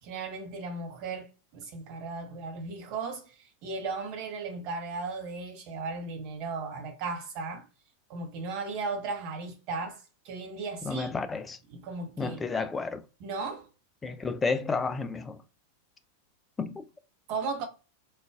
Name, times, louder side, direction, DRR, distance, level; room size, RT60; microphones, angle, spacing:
voice 1, 0.0-1.3 1.5-7.6 8.1-11.1 11.7-12.4 13.2-13.7 17.3-17.7, right 4 dB, 45° right, 0.9 m, -36 dB
voice 2, 10.9-11.6 12.2-13.0 14.0-15.4 16.6-16.8, left 4 dB, 15° left, 0.4 m, -31 dB
3.7 x 2.4 x 2.3 m
figure-of-eight pair, 90°, 0 cm